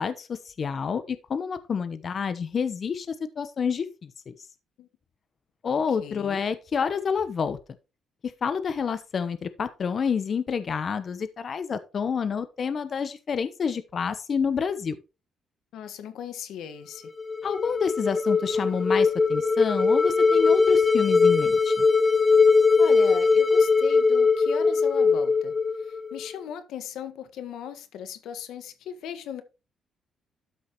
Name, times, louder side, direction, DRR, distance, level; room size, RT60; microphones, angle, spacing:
voice 1, 0.0-4.3 5.6-7.6 8.2-15.0 17.4-21.9, left 6 dB, 50° left, 1.0 m, -28 dB
voice 2, 6.0-6.4 15.7-17.1 22.8-29.4, left 8 dB, 80° left, 1.6 m, -37 dB
sound 1, 17.1-26.3, left 4 dB, 25° left, 1.8 m, -21 dB
13.0 x 5.6 x 3.1 m
cardioid pair, 90°, 0 cm